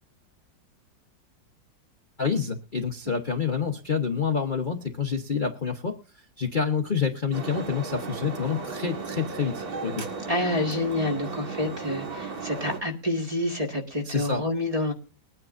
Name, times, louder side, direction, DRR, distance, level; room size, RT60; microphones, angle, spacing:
voice 1, 2.2-6.0 6.4-10.0 14.1-14.4, left 6 dB, 35° left, 3 dB, 1.0 m, -28 dB
sound 1, 7.3-12.8, right 4 dB, 60° right, 2.4 m, -35 dB
voice 2, 10.3-14.9, left 1 dB, 20° right, 1 dB, 1.8 m, -28 dB
22.0 x 9.6 x 2.5 m, 0.37 s
omnidirectional pair, 1.9 m